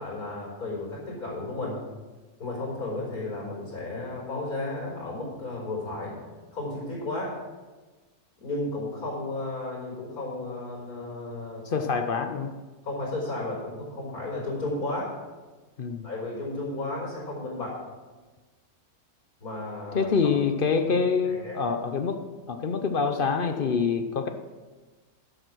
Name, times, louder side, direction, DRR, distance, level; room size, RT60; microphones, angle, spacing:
voice 1, 0.0-1.8 2.4-6.2 6.5-7.3 8.4-11.6 12.8-15.1 16.0-17.8 19.4-20.1 20.8-21.0 21.2-21.6, left 2 dB, 80° left, -5 dB, 5.2 m, -33 dB
voice 2, 11.7-12.5 15.8-16.1 19.9-22.2 22.5-24.3, left 5 dB, 50° left, 7 dB, 0.7 m, -26 dB
11.0 x 7.6 x 6.3 m, 1.3 s
omnidirectional pair, 1.5 m